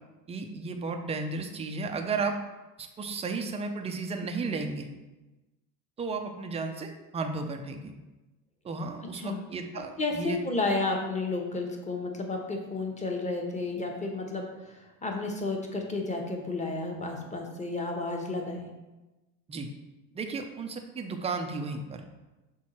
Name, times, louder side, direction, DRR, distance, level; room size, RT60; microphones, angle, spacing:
voice 1, 0.3-2.4 2.8-4.9 6.0-7.9 8.6-10.4 19.5-19.7 20.1-22.0, right 4 dB, 15° right, 5 dB, 0.4 m, -34 dB
voice 2, 10.0-14.4 15.0-18.7, left 3 dB, 15° left, 2 dB, 1.1 m, -31 dB
6.2 x 3.7 x 4.3 m, 1.1 s
hypercardioid pair, 105°, 50 cm